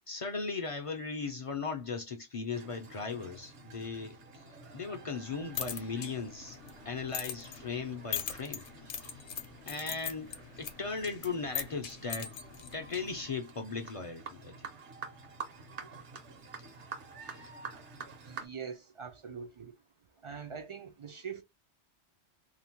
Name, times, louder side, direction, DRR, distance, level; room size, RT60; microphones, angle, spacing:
voice 1, 0.1-6.6 6.8-9.2 9.7-14.7 17.2-17.5, left 4 dB, 50° left, 0.4 m, -38 dB
sound 1, 2.5-18.5, right 5 dB, 80° right, 1.3 m, -49 dB
sound 2, 5.3-13.3, left 8 dB, 70° left, 0.9 m, -42 dB
voice 2, 18.3-19.8 20.2-21.4, right 6 dB, 55° right, 0.3 m, -43 dB
2.9 x 2.1 x 2.8 m
omnidirectional pair, 1.2 m